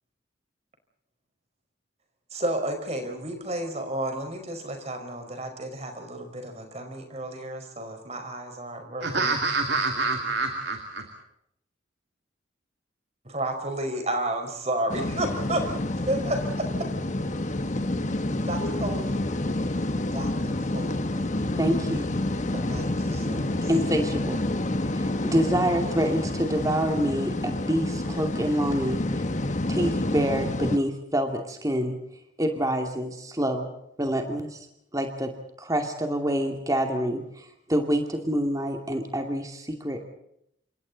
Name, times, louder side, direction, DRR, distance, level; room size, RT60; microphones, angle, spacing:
voice 1, 2.3-9.3 13.2-16.7 18.5-19.2 20.1-21.3 22.5-23.7, right 1 dB, 35° right, 5 dB, 5.2 m, -32 dB
voice 2, 9.0-11.1, right 3 dB, 60° right, 4 dB, 2.6 m, -27 dB
sound 1, 14.9-30.8, left 1 dB, 40° left, 1.3 m, -28 dB
voice 3, 21.6-22.1 23.7-24.4 24.9-29.0 29.7-32.0 32.4-33.7 34.0-34.6 34.9-35.3 35.6-40.1, equal, 20° right, 4 dB, 2.5 m, -27 dB
29.0 x 26.5 x 4.1 m, 0.74 s
head